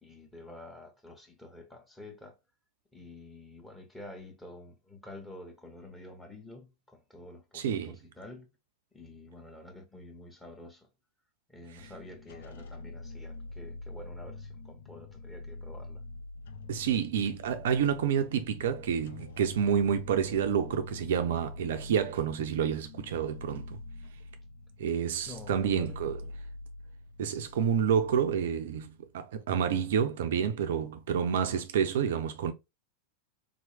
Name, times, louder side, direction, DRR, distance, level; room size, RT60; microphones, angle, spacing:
voice 1, 0.0-2.4 2.9-8.5 8.9-10.9 11.5-16.0 25.2-26.1, left 2 dB, 10° left, 1.2 m, -48 dB
voice 2, 7.5-7.9 16.7-23.8 24.8-26.2 27.2-32.5, right 8 dB, 60° right, 0.4 m, -29 dB
sound 1, 11.8-28.4 28.8-28.9 29.3-29.4, left 3 dB, 60° left, 0.4 m, -45 dB
3.9 x 3.0 x 2.7 m
figure-of-eight pair, 90°, 0 cm